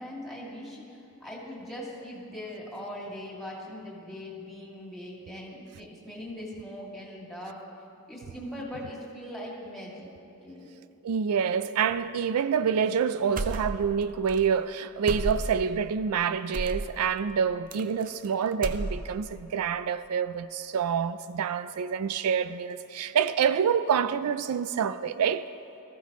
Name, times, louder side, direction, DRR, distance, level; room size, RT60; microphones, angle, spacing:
voice 1, 0.0-7.6 8.1-10.1 10.4-10.7, left 1 dB, ahead, 2.5 m, -40 dB
voice 2, 11.0-25.5, right 7 dB, 85° right, 0.4 m, -27 dB
sound 1, 13.4-14.0 14.3-14.4 15.1-15.7 16.5-16.9 17.7-18.3 18.5-19.3, right 2 dB, 40° right, 0.6 m, -32 dB
18.5 x 14.5 x 3.1 m
head